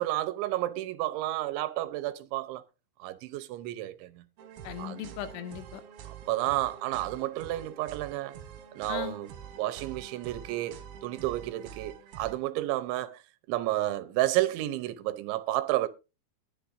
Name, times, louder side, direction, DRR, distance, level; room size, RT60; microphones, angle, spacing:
voice 1, 0.0-2.6 3.0-4.2 4.8-5.0 6.3-8.4 8.8-9.3 9.6-13.2 13.5-15.9, right 15 dB, 80° right, 3.1 m, -31 dB
sound 1, 4.4-12.3, right 8 dB, 60° right, 3.1 m, -46 dB
voice 2, 4.6-5.8 8.9-9.2, left 11 dB, 85° left, 3.6 m, -38 dB
21.5 x 7.3 x 2.6 m
omnidirectional pair, 5.4 m